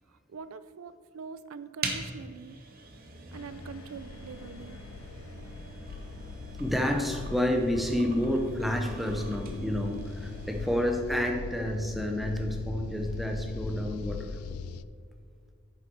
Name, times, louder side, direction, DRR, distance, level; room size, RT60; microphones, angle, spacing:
voice 1, 0.1-2.6 3.3-4.8, right 5 dB, 75° right, 13 dB, 0.4 m, -44 dB
sound 1, 1.8-10.9, right 3 dB, 40° right, 1.1 m, -42 dB
sound 2, 3.3-14.8, left 5 dB, 80° left, 0.3 m, -41 dB
voice 2, 6.6-14.4, equal, ahead, 3 dB, 0.7 m, -29 dB
9.0 x 7.1 x 4.5 m, 2.2 s
head